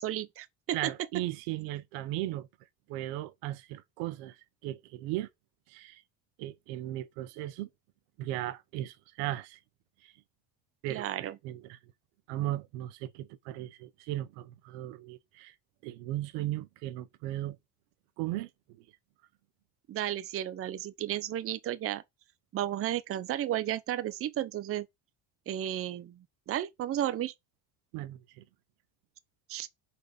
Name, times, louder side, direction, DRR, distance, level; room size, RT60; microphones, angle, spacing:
voice 1, 0.0-0.9 10.9-11.4 19.9-22.0 22.5-24.9 25.5-27.3 29.5-29.7, right 12 dB, 30° right, 0.5 m, -33 dB
voice 2, 0.7-2.5 2.9-4.4 4.6-5.3 5.7-6.0 6.4-7.7 8.2-9.6 10.0-10.1 10.8-11.8 12.3-15.5 15.8-17.6 18.2-18.8 27.9-28.4, right 15 dB, 75° right, 0.7 m, -37 dB
4.2 x 2.5 x 4.8 m
supercardioid pair, 80°, 49 cm